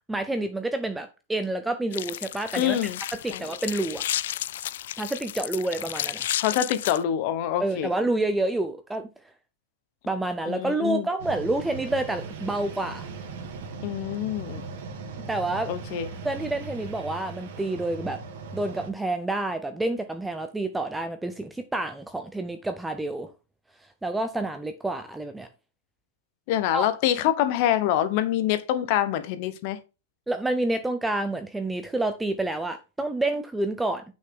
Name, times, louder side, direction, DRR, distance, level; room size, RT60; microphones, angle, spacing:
voice 1, 0.1-2.8 3.2-4.0 5.0-6.2 7.6-9.1 10.1-13.1 15.3-15.7 16.2-18.2 18.5-23.3 24.0-25.5 26.7-26.9 30.3-34.0, right 2 dB, 5° right, 0.5 m, -28 dB
sound 1, 1.9-7.0, left 12 dB, 55° left, 0.3 m, -32 dB
voice 2, 2.6-3.0 3.3-3.4 6.4-7.9 10.5-11.1 13.8-14.7 15.7-16.1 26.5-29.8, left 11 dB, 35° left, 0.9 m, -25 dB
sound 2, 11.2-18.9, right 4 dB, 45° right, 1.9 m, -38 dB
8.3 x 6.2 x 3.6 m
supercardioid pair, 175°, 0 cm